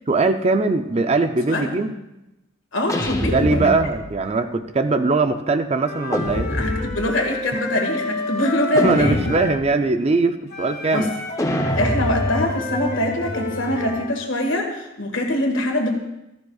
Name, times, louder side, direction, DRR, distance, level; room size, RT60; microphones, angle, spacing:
voice 1, 0.1-1.9 3.2-6.5 8.8-11.1, right 3 dB, 30° right, 9 dB, 0.5 m, -21 dB
voice 2, 2.7-3.8 6.5-9.2 10.9-11.1 11.8-16.0, left 1 dB, 70° left, 2 dB, 1.9 m, -23 dB
sound 1, 2.9-4.2 6.1-7.2 8.8-9.8 11.4-14.1, left 1 dB, 15° left, 0.8 m, -26 dB
Wind instrument woodwind instrument, 5.8-9.6 10.5-14.1, left 2 dB, 50° left, 1.6 m, -30 dB
15.0 x 13.5 x 2.4 m, 0.92 s
head